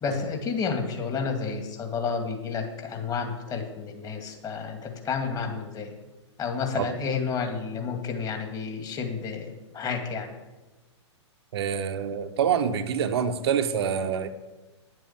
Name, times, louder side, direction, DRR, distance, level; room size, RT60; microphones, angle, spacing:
voice 1, 0.0-5.9 6.4-10.3, left 5 dB, 25° left, 5 dB, 2.1 m, -30 dB
voice 2, 11.5-14.3, right 7 dB, 60° right, 9 dB, 1.0 m, -26 dB
10.0 x 7.7 x 7.3 m, 1.1 s
figure-of-eight pair, 110°, 15 cm